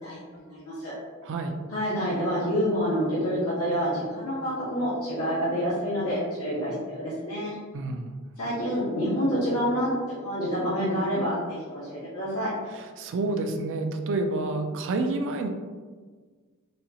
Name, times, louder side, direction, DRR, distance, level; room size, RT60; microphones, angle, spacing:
voice 1, 0.0-0.9 1.7-7.5 8.4-9.9 10.2-12.5, equal, 70° left, -9 dB, 0.9 m, -28 dB
voice 2, 1.2-1.6 7.7-8.1 12.7-15.5, right 2 dB, 60° right, 5 dB, 0.4 m, -29 dB
4.1 x 2.4 x 2.8 m, 1.5 s
head